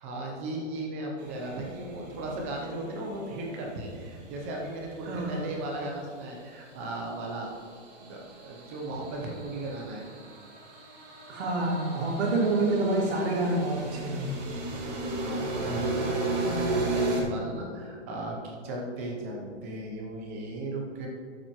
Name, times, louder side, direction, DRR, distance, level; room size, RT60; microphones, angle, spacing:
voice 1, 0.0-7.5 8.0-10.0 15.2-21.1, right 2 dB, 10° right, -1 dB, 0.5 m, -36 dB
sound 1, 1.2-5.5 7.0-17.2, right 2 dB, 35° right, 1.7 m, -35 dB
voice 2, 5.0-5.4 11.3-14.3, right 2 dB, 60° right, -9 dB, 2.3 m, -27 dB
13.5 x 7.4 x 3.0 m, 2.1 s
hypercardioid pair, 170°, 37 cm